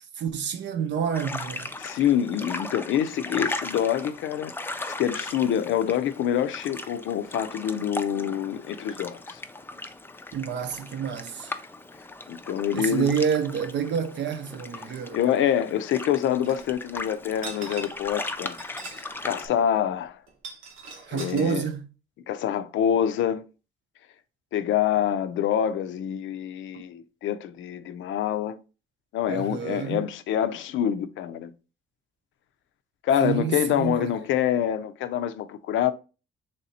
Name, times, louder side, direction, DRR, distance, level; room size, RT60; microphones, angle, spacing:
voice 1, 0.2-1.7 10.3-11.5 12.7-15.2 21.1-21.9 29.3-30.0 33.2-34.1, right 7 dB, 65° right, 0.7 m, -28 dB
sound 1, 1.1-19.5, left 2 dB, 10° left, 0.4 m, -37 dB
voice 2, 1.8-9.4 12.3-13.1 14.8-18.6 18.9-20.2 21.1-21.6 22.3-23.4 24.5-28.6 29.1-31.5 33.0-35.9, left 9 dB, 80° left, 0.5 m, -26 dB
sound 2, 16.4-16.6 17.3-18.1 18.5-19.1 19.4-19.5 20.3-21.4, right 4 dB, 80° right, 1.0 m, -40 dB
3.3 x 2.8 x 4.0 m
cardioid pair, 90°, 20 cm